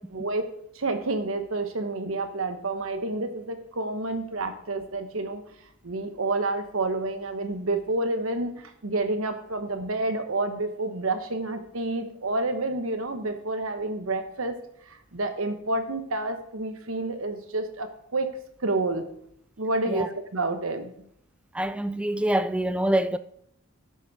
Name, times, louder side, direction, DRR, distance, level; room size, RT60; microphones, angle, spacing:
voice 1, 0.1-0.5 0.7-5.4 5.8-14.5 14.9-18.3 18.6-19.1 19.6-20.9, right 2 dB, 65° right, 1.1 m, -29 dB
voice 2, 21.5-23.2, right 1 dB, 5° right, 0.3 m, -25 dB
11.5 x 7.0 x 4.1 m
head